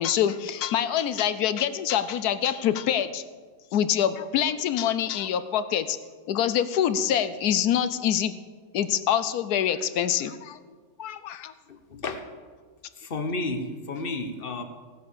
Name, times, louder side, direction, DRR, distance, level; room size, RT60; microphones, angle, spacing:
voice 1, 0.0-3.2 3.7-6.0 6.3-8.3 8.7-10.6 11.0-11.5, left 9 dB, 80° left, 13 dB, 1.2 m, -25 dB
voice 2, 11.7-12.2 13.0-14.6, left 2 dB, 40° left, 8 dB, 1.1 m, -32 dB
16.0 x 9.3 x 6.7 m, 1.5 s
omnidirectional pair, 1.6 m